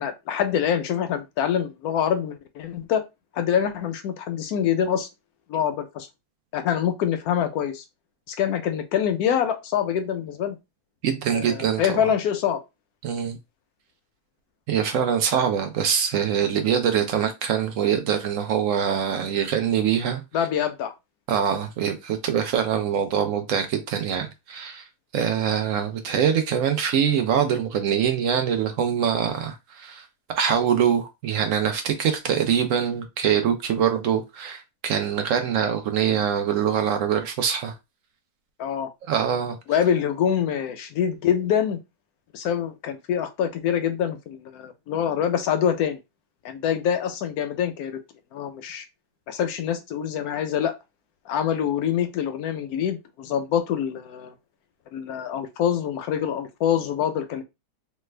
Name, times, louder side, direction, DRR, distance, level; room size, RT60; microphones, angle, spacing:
voice 1, 0.0-3.0 3.3-5.1 5.5-6.1 6.5-7.8 8.3-10.6 11.3-12.6 20.3-20.9 38.6-38.9 39.7-41.8 42.3-46.0 46.4-48.0 48.3-48.8 49.3-50.7 51.3-54.3 54.9-57.4, left 9 dB, 75° left, 1.0 m, -25 dB
voice 2, 11.0-12.1 13.0-13.4 14.7-20.2 21.3-24.8 25.1-30.1 30.4-37.7 39.1-39.6, right 8 dB, 65° right, 0.8 m, -24 dB
3.3 x 2.1 x 3.2 m
omnidirectional pair, 1.7 m